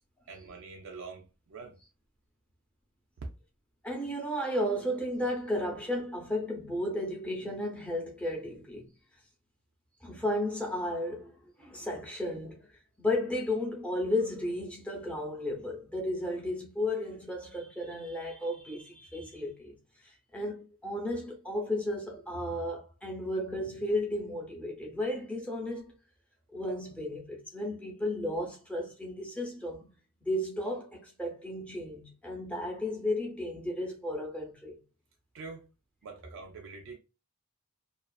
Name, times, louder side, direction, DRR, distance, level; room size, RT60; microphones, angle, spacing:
voice 1, 0.3-1.7 35.3-35.7 36.0-37.0, right 4 dB, 60° right, 0.4 m, -45 dB
voice 2, 3.8-8.9 10.0-12.7 13.0-19.7 20.0-25.9 26.5-29.9 30.2-34.8, left 1 dB, 5° left, 0.6 m, -34 dB
2.4 x 2.3 x 2.2 m
head